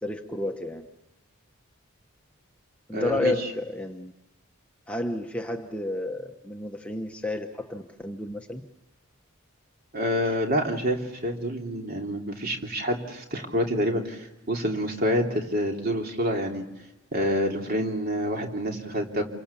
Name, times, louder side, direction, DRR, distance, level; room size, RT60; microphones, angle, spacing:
voice 1, 0.0-0.9 2.9-4.1 4.9-8.6 10.2-10.4, left 2 dB, 5° left, 3 dB, 1.1 m, -31 dB
voice 2, 2.9-3.3 9.9-16.6 17.1-19.2, equal, 45° right, 2 dB, 3.1 m, -27 dB
28.0 x 24.0 x 7.2 m, 1.0 s
head